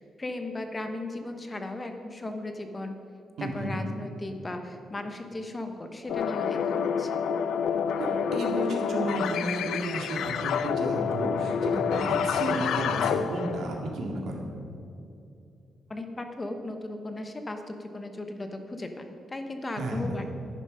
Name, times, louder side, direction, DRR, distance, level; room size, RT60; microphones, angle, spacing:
voice 1, 0.0-3.0 3.4-7.2 15.9-20.3, left 2 dB, 20° left, 6 dB, 1.0 m, -36 dB
voice 2, 3.4-3.8 8.0-14.5 19.8-20.2, right 1 dB, 70° right, 0 dB, 2.1 m, -32 dB
sound 1, 6.1-13.8, left 7 dB, 80° left, 0.5 m, -28 dB
11.0 x 10.0 x 5.5 m, 2.7 s
cardioid pair, 150°, 0 cm